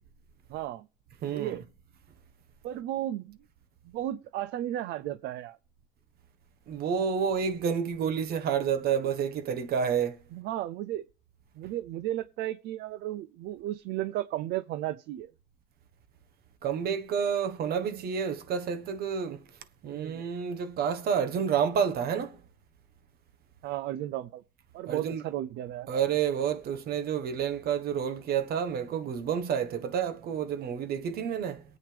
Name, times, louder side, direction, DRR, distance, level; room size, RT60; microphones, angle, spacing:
voice 1, 0.5-0.9 1.3-1.6 2.6-3.4 3.9-5.6 10.3-11.1 11.6-15.3 19.9-20.2 23.6-24.4 24.7-25.9, right 13 dB, 80° right, 0.5 m, -34 dB
voice 2, 1.2-1.6 6.7-10.2 16.6-19.4 19.8-22.4 24.9-25.2 25.9-31.6, right 7 dB, 65° right, 1.4 m, -29 dB
22.5 x 8.5 x 3.4 m
cardioid pair, 110°, 17 cm